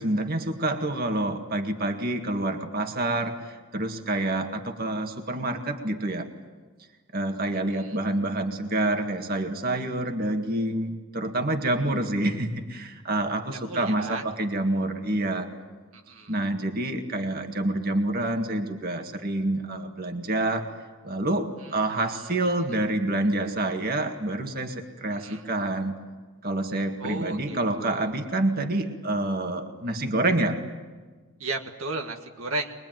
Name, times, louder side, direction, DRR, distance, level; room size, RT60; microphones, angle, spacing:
voice 1, 0.0-6.3 7.1-15.5 16.3-20.7 21.0-26.0 26.4-30.6, right 2 dB, 45° right, 5 dB, 2.0 m, -27 dB
voice 2, 13.5-14.2 15.9-16.4 25.1-25.5 27.0-28.1 31.4-32.7, right 2 dB, 80° right, 3 dB, 1.8 m, -34 dB
23.5 x 22.5 x 9.2 m, 1.3 s
head